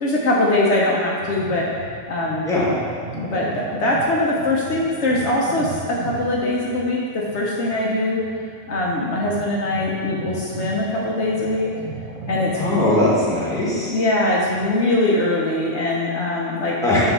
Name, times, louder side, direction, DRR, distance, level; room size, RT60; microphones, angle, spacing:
voice 1, 0.0-1.6 2.1-2.5 3.1-8.2 8.7-11.7 12.3-12.8 13.9-16.8, left 2 dB, 65° left, -4 dB, 1.0 m, -22 dB
sound 1, 1.2-14.7, right 3 dB, 80° right, 1.1 m, -36 dB
voice 2, 12.6-13.9 16.8-17.1, left 1 dB, 5° left, -7 dB, 1.4 m, -20 dB
5.8 x 3.8 x 5.4 m, 2.3 s
omnidirectional pair, 1.3 m